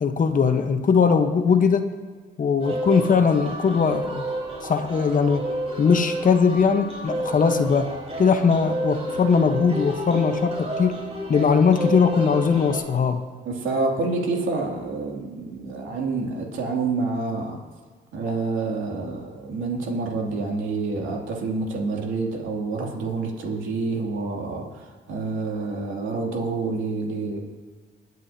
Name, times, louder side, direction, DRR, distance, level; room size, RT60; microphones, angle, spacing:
voice 1, 0.0-1.9 2.4-4.3 4.7-5.4 5.8-7.9 8.2-11.0 11.3-13.2, left 5 dB, 40° left, 7 dB, 1.1 m, -20 dB
sound 1, 2.6-12.8, right 1 dB, 30° right, 4.0 m, -30 dB
voice 2, 13.4-17.6 18.1-27.4, right 3 dB, 80° right, 0 dB, 2.7 m, -28 dB
25.0 x 9.5 x 2.8 m, 1.5 s
cardioid pair, 90°, 20 cm